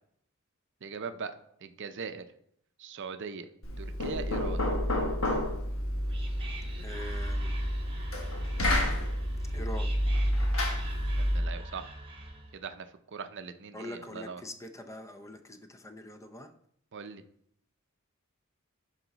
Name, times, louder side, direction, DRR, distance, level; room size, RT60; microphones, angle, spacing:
voice 1, 0.8-1.3 1.6-2.3 2.8-3.5 3.8-4.7 11.2-11.9 12.5-14.4 16.9-17.2, right 5 dB, 55° right, 10 dB, 0.6 m, -40 dB
Knock, 3.6-11.5, left 1 dB, 65° left, 1.4 m, -29 dB
Whispering, 5.7-12.6, right 2 dB, 25° right, 1.2 m, -44 dB
voice 2, 6.8-7.5 9.5-9.9 13.7-16.5, left 1 dB, 15° left, 7 dB, 0.6 m, -43 dB
10.5 x 4.1 x 4.0 m, 0.69 s
head